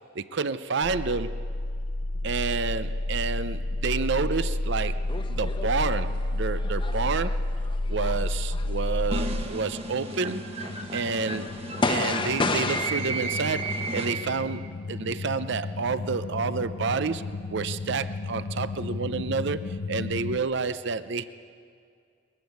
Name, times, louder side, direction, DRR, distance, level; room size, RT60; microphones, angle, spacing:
voice 1, 0.1-1.4 2.2-7.6 7.9-10.5 10.9-11.5 11.9-21.3, right 4 dB, 55° right, 13 dB, 0.6 m, -29 dB
sound 1, 0.8-20.4, left 2 dB, 70° left, 0.7 m, -32 dB
sound 2, 5.1-6.0 6.5-10.2 10.6-12.9, left 3 dB, 25° left, 0.9 m, -32 dB
sound 3, 9.1-14.5, right 2 dB, 30° right, 1.3 m, -34 dB
21.5 x 15.0 x 9.3 m, 2.2 s
head